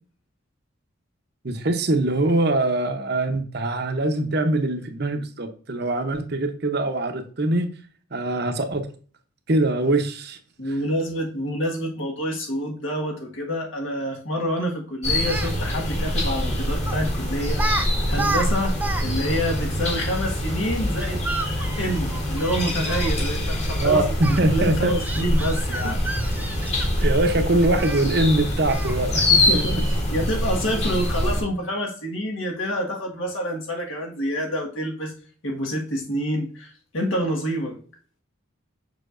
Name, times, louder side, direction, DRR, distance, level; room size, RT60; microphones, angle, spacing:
voice 1, 1.4-7.7 8.1-8.8 9.5-10.4 10.7-10.8 23.7-24.9 27.0-29.3 29.5-29.6, right 2 dB, 50° right, 7 dB, 0.8 m, -23 dB
voice 2, 10.6-24.0 24.4-26.0 29.3-29.8 30.1-35.1 35.4-37.8, equal, 70° left, 0 dB, 1.7 m, -27 dB
sound 1, 15.0-31.4, left 1 dB, 30° left, 1.5 m, -25 dB
Speech, 15.1-15.5 16.9-17.1 17.5-17.9 18.1-19.0 19.3-19.4 21.0-23.1 24.2-24.4 25.0-27.1 27.8-28.0 28.7-29.0, right 2 dB, 10° right, 0.4 m, -30 dB
6.6 x 5.9 x 2.5 m, 0.42 s
head